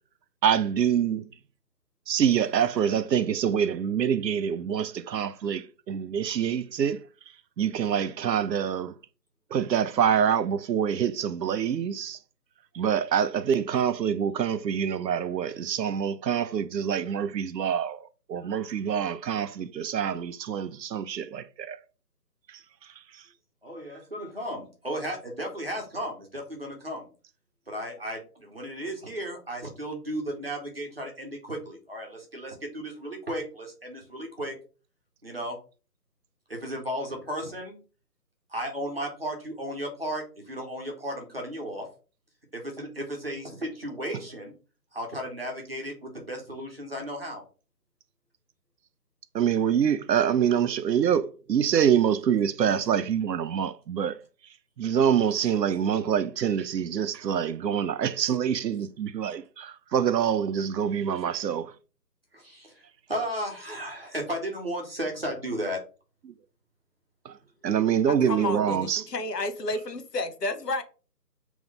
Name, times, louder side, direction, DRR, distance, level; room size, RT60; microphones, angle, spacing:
voice 1, 0.4-1.3 2.1-7.0 7.6-8.9 9.5-12.2 12.7-21.8 49.3-54.2 54.8-61.7 67.3-67.4 67.6-69.0, right 8 dB, 85° right, 0.6 m, -26 dB
voice 2, 23.6-27.1 27.7-34.5 35.2-35.6 36.5-37.8 38.5-41.9 42.5-44.5 44.9-47.4 62.3-65.8, equal, 35° right, 1.0 m, -34 dB
voice 3, 68.2-70.8, left 2 dB, 75° left, 1.0 m, -31 dB
3.6 x 3.0 x 3.6 m
figure-of-eight pair, 175°, 49 cm